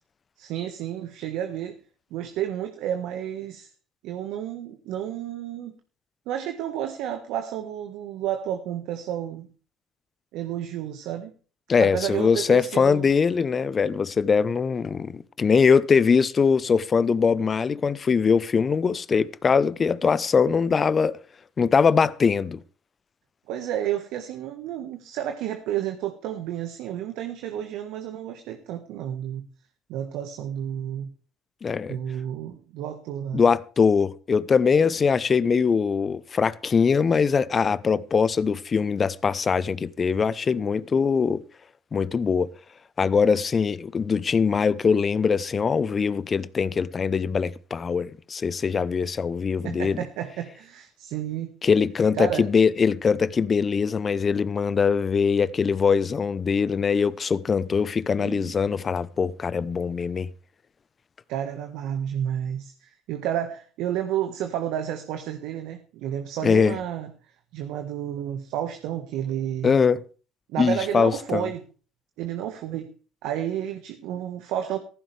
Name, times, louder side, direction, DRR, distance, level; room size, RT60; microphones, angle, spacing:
voice 1, 0.4-1.8 2.1-3.7 4.0-5.7 6.3-9.5 10.3-11.3 11.8-13.1 23.5-29.5 29.9-31.1 31.9-33.4 49.6-51.5 52.2-52.5 58.2-58.6 61.3-69.7 70.5-71.6 72.2-72.9 73.2-74.8, right 10 dB, 70° right, 1.5 m, -31 dB
voice 2, 11.7-21.1 21.6-22.6 31.6-32.0 33.3-41.4 41.9-42.5 43.0-50.0 51.6-60.3 66.4-66.8 69.6-70.0 70.6-71.5, left 5 dB, 35° left, 0.8 m, -22 dB
15.5 x 14.5 x 3.4 m
hypercardioid pair, 70°, 0 cm